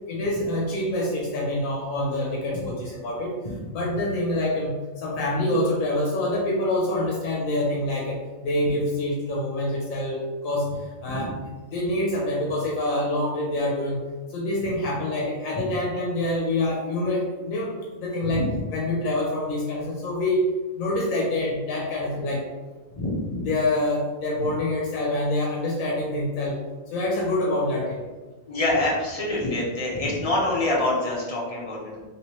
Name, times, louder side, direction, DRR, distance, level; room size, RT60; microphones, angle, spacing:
voice 1, 0.1-3.3 3.7-10.7 11.0-11.4 11.7-14.0 14.3-17.7 18.0-20.4 20.8-22.5 23.4-26.6 26.9-28.0, left 1 dB, 85° left, -2 dB, 1.0 m, -26 dB
voice 2, 18.2-18.6 22.9-23.4 28.5-32.1, left 2 dB, 35° left, -4 dB, 0.7 m, -26 dB
3.2 x 3.0 x 2.9 m, 1.3 s
omnidirectional pair, 1.4 m